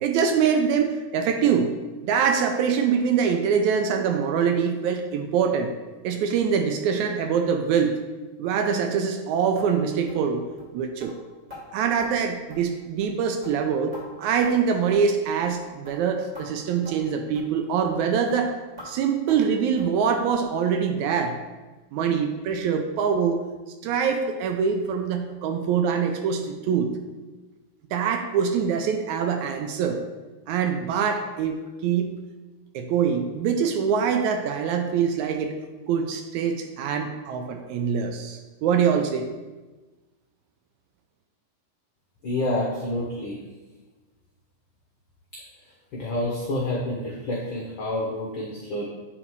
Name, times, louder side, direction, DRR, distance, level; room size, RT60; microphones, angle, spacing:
voice 1, 0.0-1.7 2.0-5.7 6.0-7.9 8.4-10.4 10.7-11.1 11.7-18.5 18.9-21.4 21.9-23.4 23.8-26.9 27.9-30.0 30.5-32.1 32.7-35.5 35.9-39.3, right 6 dB, 80° right, 5 dB, 1.8 m, -24 dB
sound 1, 9.6-9.7 10.1-10.2 10.6-10.7 11.0-11.1 11.5-11.6 12.0-12.1 12.5-12.7 13.0-13.2 13.4-14.0 14.4-14.7 14.9-15.1 15.4-15.6 15.8-16.0 16.3-16.5 16.8-17.0 17.3-17.5 17.8-18.0 18.3-18.4 18.8-18.9 19.3-19.5 19.8-19.9 20.3-20.4 20.8-20.9 21.3-21.4 21.8-21.9, left 1 dB, 20° right, 1.1 m, -45 dB
voice 2, 42.2-43.4 45.3-45.4 45.9-48.8, left 1 dB, 80° left, -3 dB, 1.1 m, -28 dB
8.1 x 3.8 x 4.6 m, 1.2 s
omnidirectional pair, 3.6 m